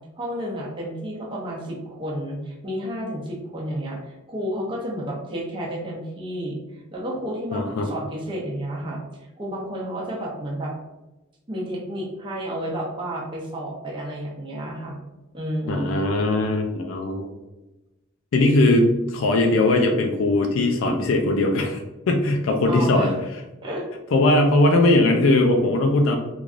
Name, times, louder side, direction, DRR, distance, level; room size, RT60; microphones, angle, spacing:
voice 1, 0.2-9.0 9.4-10.7 11.5-15.0 15.3-16.0 22.7-23.2 23.6-23.9, equal, 25° right, -3 dB, 0.6 m, -31 dB
voice 2, 7.5-7.9 15.7-17.3 18.3-21.8 22.1-23.1 24.1-26.2, left 2 dB, 80° left, 3 dB, 0.4 m, -19 dB
3.1 x 2.5 x 2.4 m, 1.1 s
head